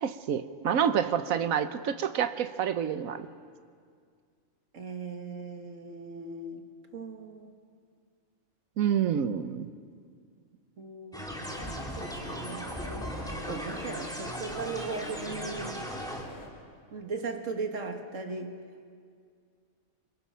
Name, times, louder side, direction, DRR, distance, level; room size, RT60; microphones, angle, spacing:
voice 1, 0.0-3.3 8.8-9.7, right 8 dB, 80° right, 10 dB, 1.3 m, -28 dB
voice 2, 4.7-6.7 6.9-7.6 10.8-11.3 11.6-11.7 12.0-12.7 13.5-15.9 16.9-18.6, right 3 dB, 65° right, 4 dB, 2.1 m, -38 dB
sound 1, 11.1-16.2, equal, 5° left, 2.8 m, -38 dB
sound 2, 11.4-16.5, left 2 dB, 85° left, 4.0 m, -44 dB
27.0 x 24.0 x 5.7 m, 2.1 s
omnidirectional pair, 1.4 m